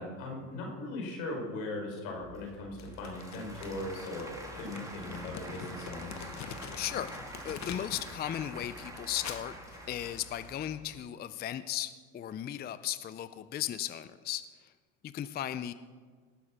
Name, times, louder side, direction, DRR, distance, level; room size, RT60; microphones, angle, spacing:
voice 1, 0.0-6.3, left 2 dB, 75° left, 1 dB, 4.8 m, -39 dB
Applause / Crowd, 2.2-11.0, right 1 dB, 10° right, 2.6 m, -46 dB
Crumpling crinkling, 2.8-8.2 8.5-10.5, left 7 dB, 40° left, 1.3 m, -46 dB
voice 2, 6.8-9.5 9.9-14.7 15.0-15.7, left 11 dB, 25° left, 13 dB, 0.4 m, -36 dB
18.5 x 7.1 x 5.9 m, 1.5 s
supercardioid pair, 95°, 42 cm